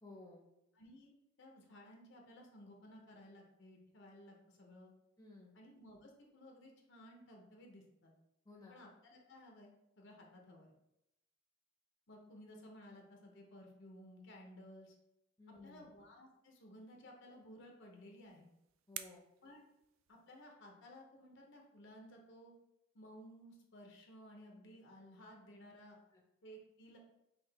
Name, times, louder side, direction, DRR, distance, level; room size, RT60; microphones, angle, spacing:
voice 1, 0.0-0.4 5.2-5.5 8.4-8.8 15.4-15.8 18.9-19.2 26.1-26.2, left 2 dB, 20° left, -2 dB, 0.8 m, -56 dB
voice 2, 0.7-1.1 1.4-4.9 5.5-8.1 8.7-10.7 12.1-14.9 15.6-18.5 19.4-19.6 20.1-22.5 22.9-26.0 26.4-27.0, equal, 60° left, 1 dB, 0.8 m, -57 dB
sound 1, 17.9-20.6, right 11 dB, 70° right, 0.3 m, -53 dB
5.7 x 2.4 x 3.4 m, 0.86 s
head